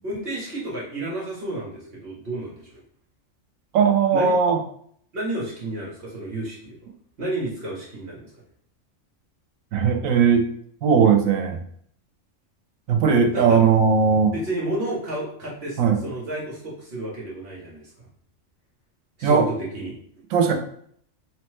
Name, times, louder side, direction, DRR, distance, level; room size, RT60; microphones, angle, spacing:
voice 1, 0.0-2.8 4.1-4.4 5.1-6.8 7.2-8.3 13.3-13.6 14.3-17.9 19.2-20.0, right 1 dB, 55° right, -5 dB, 1.0 m, -31 dB
voice 2, 3.7-4.6 9.7-10.5 10.8-11.6 12.9-14.3 15.8-16.0 19.2-19.5 20.3-20.5, right 6 dB, 85° right, 4 dB, 1.0 m, -18 dB
3.1 x 2.1 x 3.1 m, 0.64 s
omnidirectional pair, 1.4 m